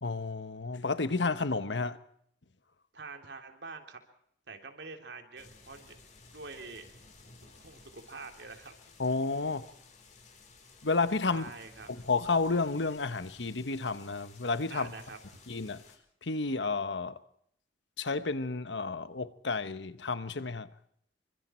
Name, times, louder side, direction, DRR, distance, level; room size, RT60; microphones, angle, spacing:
voice 1, 0.0-2.0 9.0-9.7 10.8-11.5 12.0-14.9 15.5-15.8 16.2-17.2 18.0-20.7, left 3 dB, 90° left, 1.2 m, -31 dB
voice 2, 2.9-4.0 4.5-6.0 6.3-6.9 7.5-8.7 11.3-11.9 14.7-15.4, right 4 dB, 75° right, 3.4 m, -46 dB
sound 1, 5.4-16.0, left 4 dB, 45° left, 4.8 m, -56 dB
28.0 x 24.5 x 4.5 m
head